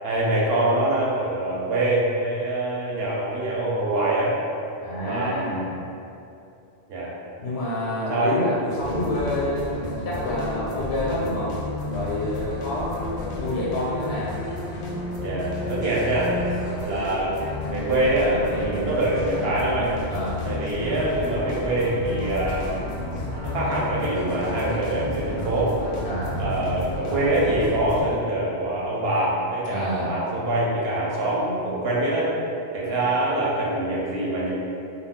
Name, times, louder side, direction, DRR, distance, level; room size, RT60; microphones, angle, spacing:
voice 1, 0.0-4.3 5.0-5.7 6.9-7.1 8.1-8.3 15.2-16.4 16.8-17.3 17.7-20.0 20.5-22.7 23.4-25.7 26.4-32.3 32.7-34.5, right 1 dB, 65° right, -6 dB, 0.8 m, -24 dB
voice 2, 4.8-5.7 7.4-9.8 10.0-11.6 11.9-14.3 18.6-18.9 20.1-20.4 26.0-26.4 29.7-30.1, left 1 dB, 85° left, -6 dB, 0.9 m, -28 dB
sound 1, 8.8-28.0, left 2 dB, 55° left, 0.5 m, -31 dB
2.3 x 2.2 x 3.5 m, 2.6 s
omnidirectional pair, 1.1 m